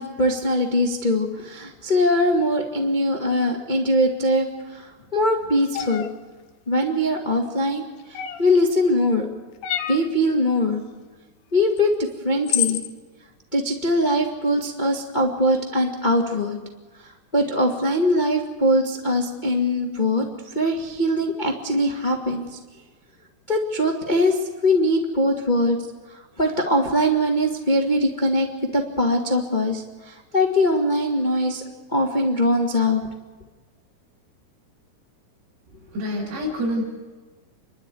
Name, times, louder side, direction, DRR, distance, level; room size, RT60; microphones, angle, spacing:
voice 1, 0.0-6.0 6.7-7.8 8.1-9.2 9.9-10.8 11.5-11.9 12.2-12.8 13.5-16.6 17.3-20.2 20.5-22.6 23.5-25.8 26.4-28.5 28.7-31.6 31.9-33.0, left 1 dB, 35° left, 1 dB, 0.7 m, -21 dB
sound 1, 5.7-6.1 8.1-8.6 9.6-10.1 11.8-11.9 12.5-12.9, left 11 dB, 80° left, 3.0 m, -26 dB
voice 2, 35.9-36.8, left 1 dB, 60° right, -6 dB, 8.8 m, -26 dB
29.5 x 12.5 x 9.4 m, 1.3 s
omnidirectional pair, 4.9 m